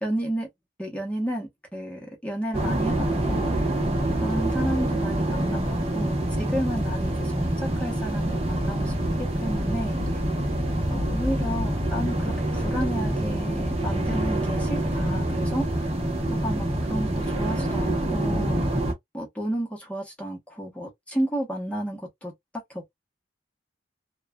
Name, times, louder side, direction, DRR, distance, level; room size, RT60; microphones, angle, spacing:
voice 1, 0.0-0.5 0.8-3.6 4.2-10.2 10.9-15.9 16.3-18.8 19.1-22.3 22.7-23.0, right 1 dB, 5° left, 0.9 m, -32 dB
sound 1, 2.5-18.9, right 1 dB, 30° right, 0.9 m, -26 dB
3.0 x 2.3 x 2.2 m
head